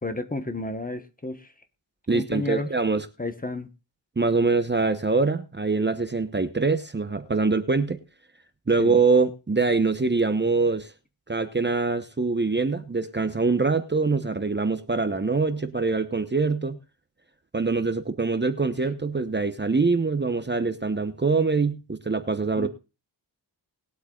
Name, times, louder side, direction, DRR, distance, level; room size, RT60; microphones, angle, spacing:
voice 1, 0.0-1.5 2.1-2.7 3.2-3.7 8.8-9.0 22.6-22.7, left 2 dB, 20° left, 8 dB, 1.1 m, -31 dB
voice 2, 2.1-3.1 4.2-8.0 8.7-10.9 11.3-16.8 17.5-22.7, right 4 dB, 25° right, 9 dB, 1.0 m, -24 dB
21.0 x 8.2 x 2.4 m, 0.30 s
wide cardioid pair, 90°, 45 cm